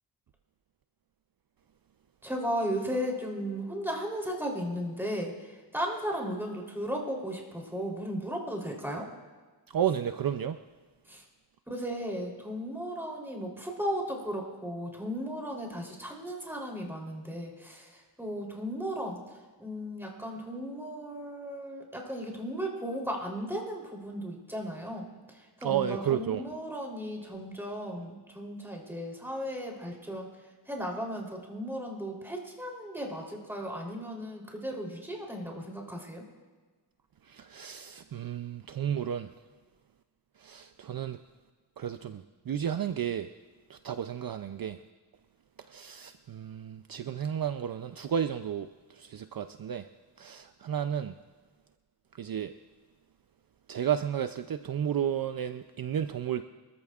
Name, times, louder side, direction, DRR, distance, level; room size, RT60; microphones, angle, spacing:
voice 1, 2.2-5.3 5.7-9.0 11.1-11.2 11.7-19.2 19.6-25.1 25.6-30.3 30.7-36.2, equal, 5° right, -1 dB, 3.4 m, -35 dB
voice 2, 9.7-10.6 25.6-26.4 37.3-39.3 40.4-41.2 41.8-43.3 43.7-44.8 45.7-49.9 50.2-51.1 52.2-52.5 53.7-56.4, right 9 dB, 55° right, 9 dB, 0.5 m, -32 dB
25.0 x 14.0 x 2.4 m, 1.4 s
wide cardioid pair, 85°, 42 cm